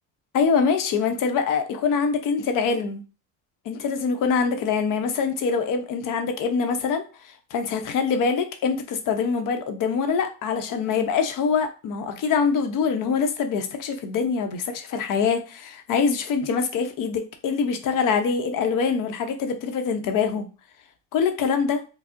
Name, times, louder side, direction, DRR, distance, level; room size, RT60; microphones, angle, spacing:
voice 1, 0.3-3.0 3.7-20.5 21.1-21.8, left 5 dB, 55° left, 6 dB, 0.7 m, -24 dB
4.3 x 2.0 x 2.5 m, 0.33 s
cardioid pair, 115°, 38 cm